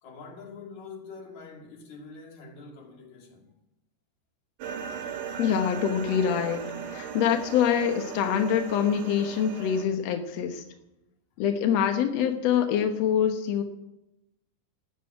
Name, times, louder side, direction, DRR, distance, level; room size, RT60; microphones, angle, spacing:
voice 1, 0.0-3.5, left 4 dB, 50° left, 3.4 m, -45 dB
sound 1, 4.6-9.8, right 7 dB, 60° right, 2.0 m, -37 dB
voice 2, 5.4-10.6 11.4-13.6, left 8 dB, 75° left, 1.6 m, -25 dB
13.0 x 10.5 x 8.8 m
omnidirectional pair, 4.6 m